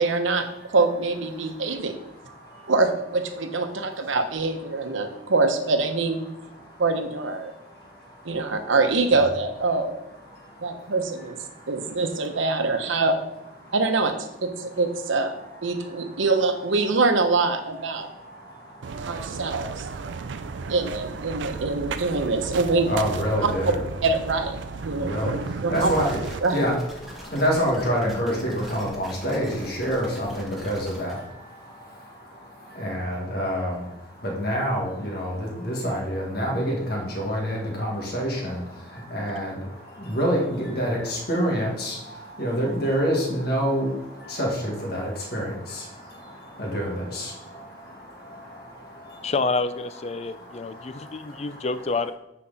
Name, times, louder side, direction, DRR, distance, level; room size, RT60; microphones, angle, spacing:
voice 1, 0.0-2.0 2.7-6.2 6.8-7.5 8.2-10.0 10.6-13.2 13.7-14.1 14.4-15.3 15.6-18.1 19.1-19.9 20.7-22.9 23.4-23.5 24.0-24.6 24.8-25.1 25.6-25.9 26.4-26.6, right 3 dB, 90° right, 7 dB, 0.9 m, -24 dB
voice 2, 1.3-2.7 3.7-4.0 4.7-5.3 6.3-6.8 7.4-8.7 10.2-12.0 13.6-13.7 14.5-14.8 15.3-16.2 17.9-20.8 21.3-22.3 22.9-23.8 24.8-26.2 26.5-49.3 50.1-51.7, equal, 55° left, -2 dB, 1.8 m, -29 dB
sound 1, 18.8-26.4, right 5 dB, 70° right, 0.4 m, -34 dB
sound 2, 25.7-31.1, equal, ahead, 1.4 m, -43 dB
voice 3, 49.2-52.1, left 3 dB, 35° left, 12 dB, 0.3 m, -28 dB
9.5 x 4.6 x 4.0 m, 0.89 s
head